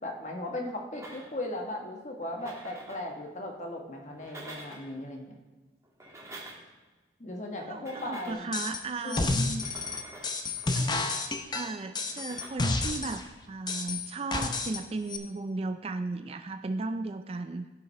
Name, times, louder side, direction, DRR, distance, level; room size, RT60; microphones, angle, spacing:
voice 1, 0.0-5.3 7.2-8.4 9.0-9.2, left 1 dB, 40° left, 2 dB, 1.2 m, -37 dB
sound 1, 0.9-1.6 2.2-3.1 4.0-5.0 5.8-6.8 7.7-8.5 9.5-11.2 12.0-12.5, right 1 dB, 15° right, 1.4 m, -47 dB
voice 2, 7.6-9.6 10.7-11.0 11.5-17.7, right 3 dB, 30° right, 9 dB, 0.4 m, -35 dB
sound 2, 8.5-8.8 9.1-13.2 13.7-14.8 15.1-15.2, left 3 dB, 25° left, 0.6 m, -30 dB
15.5 x 5.7 x 3.2 m, 1.2 s
head